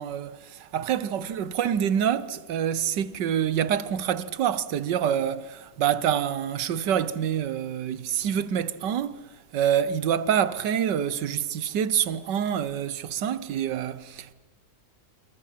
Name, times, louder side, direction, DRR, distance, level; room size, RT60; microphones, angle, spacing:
voice 1, 0.0-14.3, right 9 dB, 80° right, 1.6 m, -26 dB
27.5 x 25.5 x 5.8 m
omnidirectional pair, 1.9 m